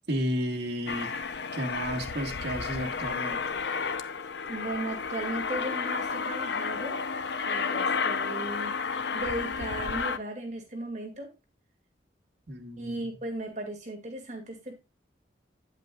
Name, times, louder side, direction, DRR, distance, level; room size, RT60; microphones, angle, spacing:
voice 1, 0.1-1.1 1.5-3.4 12.5-13.0, equal, 75° right, 1.6 m, -32 dB
Aircraft, 0.9-10.2, left 5 dB, 80° left, 0.7 m, -32 dB
voice 2, 4.4-7.1 7.4-8.8 9.1-11.3 12.8-14.8, right 1 dB, 40° right, 2.3 m, -36 dB
9.3 x 8.1 x 2.4 m
head